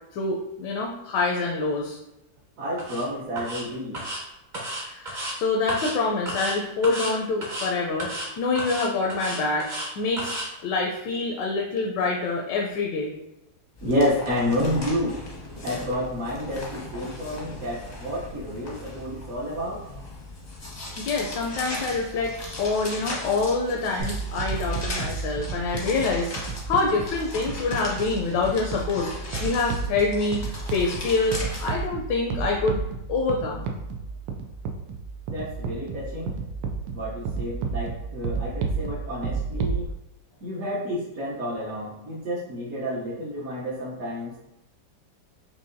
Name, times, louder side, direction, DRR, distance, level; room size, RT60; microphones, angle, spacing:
voice 1, 0.1-2.0 4.8-9.7 10.0-13.1 21.0-32.8 33.1-33.7, left 3 dB, 80° left, 0 dB, 1.2 m, -26 dB
voice 2, 2.6-4.0 13.8-15.2 15.6-19.8 35.3-36.4 36.9-39.9 40.4-44.4, equal, 55° right, -7 dB, 1.2 m, -29 dB
sound 1, 2.8-3.0 3.4-3.6 3.9-4.2 4.5-5.3 5.7-6.0 6.3-6.6 6.8-7.1 7.4-7.7 8.0-8.3 8.6-9.9 10.2-10.5, right 1 dB, 35° right, 0.9 m, -32 dB
sound 2, 13.8-31.9, left 2 dB, 35° left, 0.6 m, -37 dB
sound 3, 24.0-39.8, right 5 dB, 85° right, 1.2 m, -32 dB
5.5 x 2.7 x 2.6 m, 0.92 s
omnidirectional pair, 1.9 m